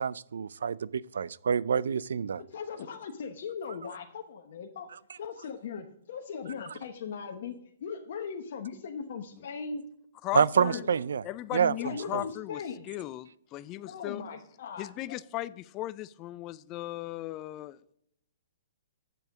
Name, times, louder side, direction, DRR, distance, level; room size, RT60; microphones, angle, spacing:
voice 1, 0.0-2.4 10.3-11.2 11.5-12.2, right 7 dB, 75° right, 21 dB, 0.4 m, -27 dB
voice 2, 2.4-4.9 5.2-9.8 10.5-10.9 11.8-12.9 13.8-15.2, left 6 dB, 60° left, 3 dB, 1.0 m, -39 dB
voice 3, 10.2-10.8 11.2-14.2 14.8-17.8, left 16 dB, 30° left, 17 dB, 0.4 m, -37 dB
7.9 x 7.0 x 4.9 m, 0.73 s
hypercardioid pair, 135°, 0 cm